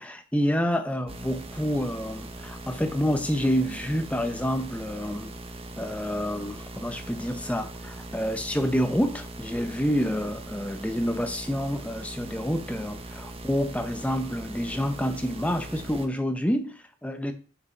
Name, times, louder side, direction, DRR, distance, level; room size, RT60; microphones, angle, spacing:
voice 1, 0.0-5.3 5.8-7.7 8.1-17.3, equal, 5° left, 7 dB, 0.8 m, -28 dB
sound 1, 1.1-16.1, right 2 dB, 30° right, 0.8 m, -40 dB
7.0 x 4.8 x 6.5 m, 0.41 s
head